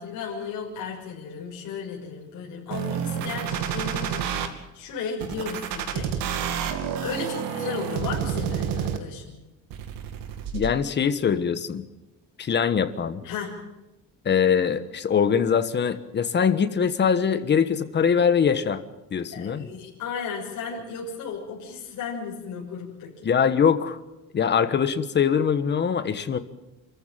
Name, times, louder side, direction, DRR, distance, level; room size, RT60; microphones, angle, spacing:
voice 1, 0.0-6.2 7.0-9.4 13.2-13.7 19.3-23.3, left 5 dB, 60° left, -4 dB, 6.4 m, -35 dB
sound 1, 2.7-4.5 5.2-9.2 9.7-10.7, right 8 dB, 80° right, 2.7 m, -29 dB
voice 2, 10.5-11.8 12.4-13.2 14.2-18.8 19.1-19.7 23.2-24.0 24.3-26.4, left 7 dB, 30° left, 11 dB, 1.4 m, -22 dB
28.0 x 14.5 x 9.1 m, 0.99 s
cardioid pair, 160°, 34 cm